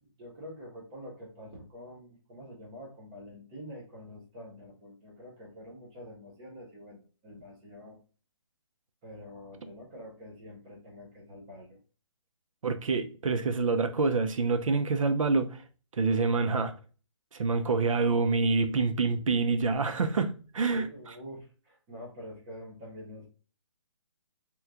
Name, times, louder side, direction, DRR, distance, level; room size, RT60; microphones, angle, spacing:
voice 1, 0.0-8.0 9.0-11.8 20.7-23.3, left 1 dB, 10° right, 0.4 m, -46 dB
voice 2, 12.6-15.6 16.0-16.7 17.3-20.9, right 4 dB, 90° right, 0.6 m, -27 dB
3.0 x 2.3 x 3.5 m
hypercardioid pair, 170°, 16 cm